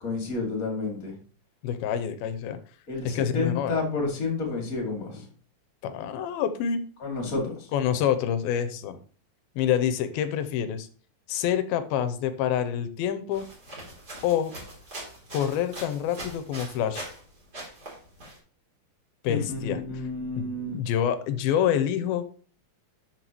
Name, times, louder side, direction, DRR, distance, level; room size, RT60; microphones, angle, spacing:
voice 1, 0.0-1.1 2.9-5.3 7.0-7.7 19.3-20.8, left 3 dB, 25° left, 0 dB, 2.2 m, -30 dB
voice 2, 1.6-2.6 3.1-3.8 5.8-6.8 7.7-9.0 9.6-10.9 11.3-13.5 14.2-14.5 15.3-17.1 19.2-19.8 20.4-22.2, left 9 dB, 85° left, 11 dB, 2.5 m, -27 dB
sound 1, 13.3-17.2 17.5-18.4, right 1 dB, 25° right, 3.3 m, -41 dB
12.0 x 6.2 x 3.1 m, 0.43 s
omnidirectional pair, 4.4 m